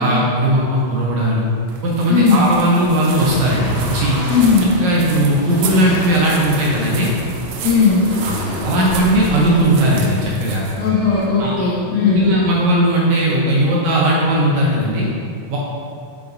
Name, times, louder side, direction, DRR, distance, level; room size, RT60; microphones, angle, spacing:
voice 1, 0.0-1.5 1.8-4.2 4.8-7.1 8.2-8.3 8.6-10.6 11.4-11.6 12.0-15.1 15.5-15.6, right 1 dB, 70° right, -4 dB, 2.0 m, -17 dB
foley walking whitegravel front, 1.7-11.6, right 5 dB, 85° right, 1.5 m, -34 dB
voice 2, 2.1-2.4 4.3-4.7 7.6-8.0 10.8-12.4, left 5 dB, 75° left, -5 dB, 1.8 m, -16 dB
sound 1, 3.1-10.3, right 1 dB, 40° right, 1.5 m, -29 dB
7.6 x 5.9 x 2.6 m, 2.4 s
omnidirectional pair, 3.8 m